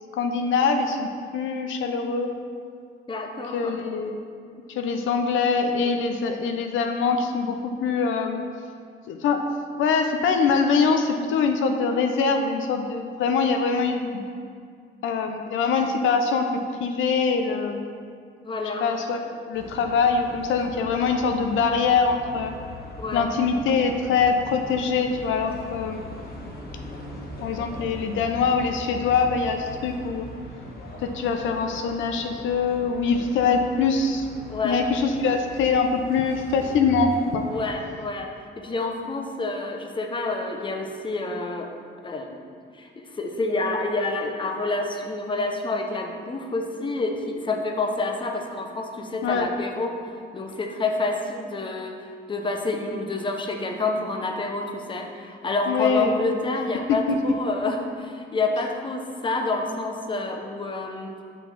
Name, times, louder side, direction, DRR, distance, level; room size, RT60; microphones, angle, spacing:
voice 1, 0.1-2.3 3.5-4.2 4.7-8.4 9.1-9.5 9.8-14.2 15.0-17.9 18.8-22.5 23.1-26.1 27.4-30.3 31.0-34.3 34.6-37.5 49.2-49.5 55.7-56.2, left 5 dB, 80° left, 5 dB, 0.5 m, -23 dB
voice 2, 3.1-3.7 18.4-18.8 23.0-23.3 34.5-34.8 37.5-41.7 42.0-42.4 42.7-52.0 52.3-61.1, left 3 dB, 25° left, 3 dB, 0.7 m, -28 dB
sound 1, 19.5-37.7, equal, 50° left, 1.2 m, -40 dB
5.9 x 3.9 x 5.8 m, 2.2 s
cardioid pair, 90°, 20 cm